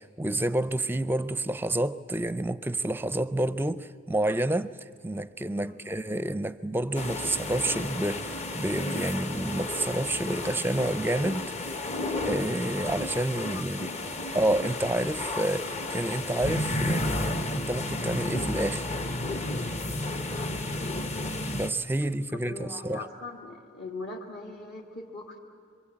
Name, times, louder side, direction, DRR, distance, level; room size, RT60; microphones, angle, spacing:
voice 1, 0.0-4.7 5.0-11.5 12.3-13.9 14.3-19.0 21.5-23.0, right 1 dB, 10° right, 0.6 m, -29 dB
sound 1, 6.9-21.7, left 2 dB, 35° left, 1.1 m, -32 dB
voice 2, 13.5-13.9 20.3-20.6 22.4-25.4, left 3 dB, 55° left, 2.4 m, -41 dB
26.0 x 24.5 x 8.8 m
head